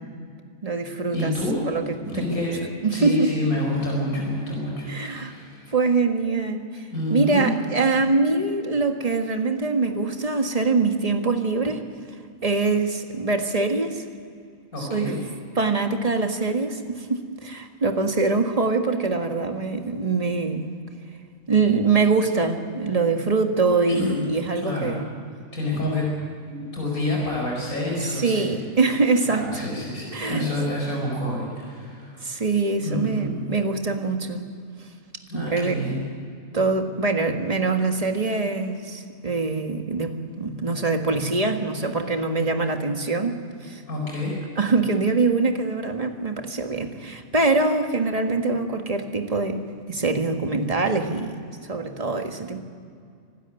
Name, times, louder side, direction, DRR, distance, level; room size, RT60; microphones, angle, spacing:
voice 1, 0.6-1.3 1.7-1.8 2.1-2.5 2.8-3.3 4.9-5.3 5.7-6.9 7.1-11.8 12.4-14.0 14.8-15.1 15.6-20.7 21.5-25.1 28.0-29.7 30.1-30.5 32.2-34.5 35.3-35.9 36.5-43.4 43.6-43.8 44.6-51.4 51.6-52.6, right 3 dB, 25° right, 5 dB, 1.7 m, -24 dB
voice 2, 1.1-1.6 2.0-2.6 2.9-5.7 6.9-7.5 14.7-15.2 24.0-24.2 24.6-25.0 25.5-26.1 26.5-28.6 29.3-32.2 32.8-33.4 35.3-36.0 43.9-44.3, left 1 dB, 85° left, -2 dB, 5.3 m, -28 dB
25.5 x 12.5 x 9.2 m, 2.3 s
omnidirectional pair, 1.5 m